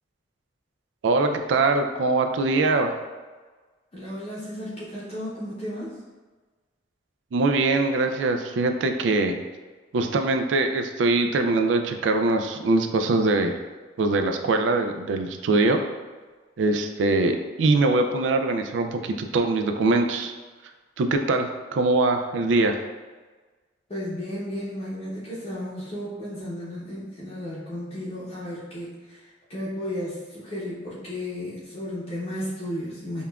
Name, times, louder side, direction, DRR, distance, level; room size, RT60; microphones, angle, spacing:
voice 1, 1.0-2.9 7.3-9.4 9.9-13.6 14.0-15.8 16.6-20.3 21.0-22.8, right 3 dB, 80° right, 6 dB, 0.3 m, -22 dB
voice 2, 3.9-6.0 23.9-33.2, left 1 dB, 35° left, -8 dB, 0.7 m, -34 dB
5.3 x 2.4 x 2.3 m, 1.3 s
head